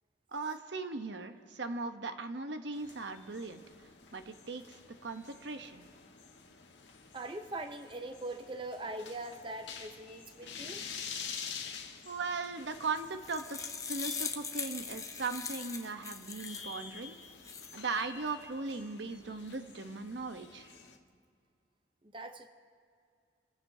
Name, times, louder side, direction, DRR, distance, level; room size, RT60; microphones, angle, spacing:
voice 1, 0.3-3.6 4.1-4.6 5.0-5.8 12.1-17.2 17.7-20.7, right 3 dB, 75° right, 8 dB, 0.9 m, -38 dB
sound 1, 2.7-21.0, left 6 dB, 80° left, 1.4 m, -48 dB
voice 2, 7.1-10.8 22.0-22.5, right 2 dB, 25° right, 6 dB, 0.7 m, -42 dB
sound 2, 13.0-16.8 17.2-17.8, left 5 dB, 15° left, 0.7 m, -40 dB
29.5 x 15.5 x 2.8 m, 2.3 s
head